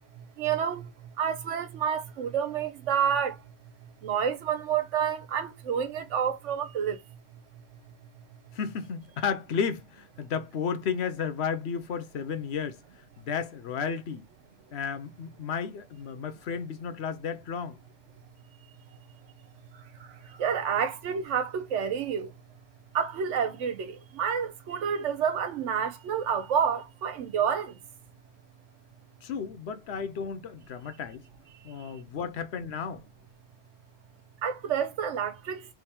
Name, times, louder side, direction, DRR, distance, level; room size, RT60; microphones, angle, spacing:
voice 1, 0.4-0.8 1.2-3.3 4.0-7.0 20.4-22.3 22.9-27.7 34.4-35.6, right 7 dB, 85° right, 1.1 m, -29 dB
voice 2, 8.5-12.8 13.2-14.3 14.7-17.8 29.2-31.2 31.6-33.0, left 6 dB, 70° left, 0.9 m, -33 dB
3.6 x 3.4 x 4.3 m
omnidirectional pair, 1.2 m